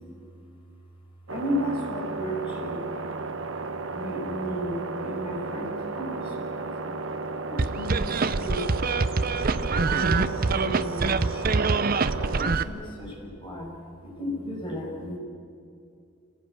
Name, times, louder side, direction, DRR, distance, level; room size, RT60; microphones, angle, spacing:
voice 1, 1.3-2.8 3.9-7.0 7.5-8.7 9.8-11.5 12.2-13.7 14.0-15.2, equal, 20° left, -4 dB, 6.3 m, -34 dB
sound 1, 1.3-12.5, right 3 dB, 60° right, 1.0 m, -34 dB
sound 2, 7.6-12.6, right 4 dB, 40° right, 0.6 m, -25 dB
27.5 x 17.5 x 8.3 m, 2.4 s
head